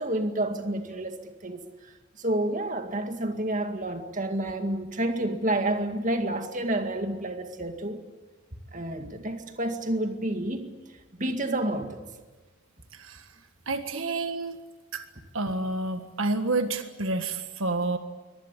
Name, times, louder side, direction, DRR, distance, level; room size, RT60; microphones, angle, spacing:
voice 1, 0.0-8.0 8.7-10.8 11.2-12.1 13.9-14.0, right 1 dB, 35° right, 6 dB, 2.1 m, -29 dB
voice 2, 12.9-13.3 13.7-14.6 14.9-15.1 15.3-18.0, right 2 dB, 75° right, 8 dB, 1.6 m, -29 dB
24.0 x 19.5 x 9.9 m, 1.3 s
head